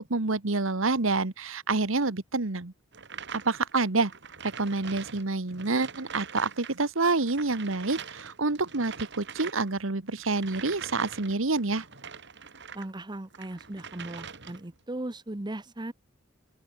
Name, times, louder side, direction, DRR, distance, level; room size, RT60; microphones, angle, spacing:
voice 1, 0.0-2.7 3.3-4.1 4.4-11.8, right 3 dB, 75° right, 1.5 m, -28 dB
sound 1, 2.9-6.8 7.0-12.9 13.3-14.8, right 6 dB, 60° right, 6.1 m, -43 dB
voice 2, 12.7-15.9, right 1 dB, 20° right, 1.0 m, -37 dB
open air
head